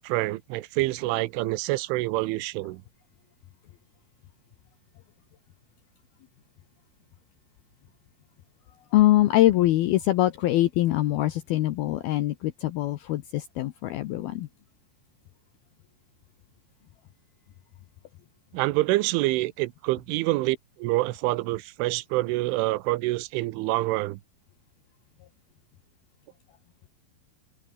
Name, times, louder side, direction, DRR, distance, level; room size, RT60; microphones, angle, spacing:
voice 1, 0.0-2.8 18.5-24.2, right 19 dB, 85° right, 3.3 m, -26 dB
voice 2, 8.9-14.5, left 15 dB, 75° left, 2.3 m, -23 dB
omnidirectional pair, 5.6 m